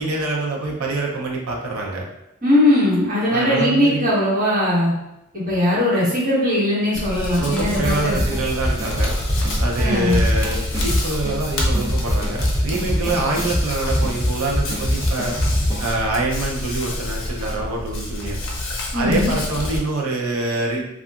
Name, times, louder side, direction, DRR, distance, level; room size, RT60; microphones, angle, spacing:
voice 1, 0.0-2.1 3.3-4.1 7.4-9.1 9.6-15.3 15.8-18.4 18.9-20.8, right 2 dB, 80° right, -1 dB, 0.5 m, -25 dB
voice 2, 2.4-4.9 5.3-8.2 9.8-10.2 18.9-19.3, left 1 dB, 40° right, -10 dB, 1.4 m, -19 dB
Hands, 6.9-19.8, left 1 dB, 60° left, 0.5 m, -28 dB
sound 1, 7.8-16.0, equal, 15° right, 0.6 m, -23 dB
2.7 x 2.3 x 2.3 m, 0.87 s
head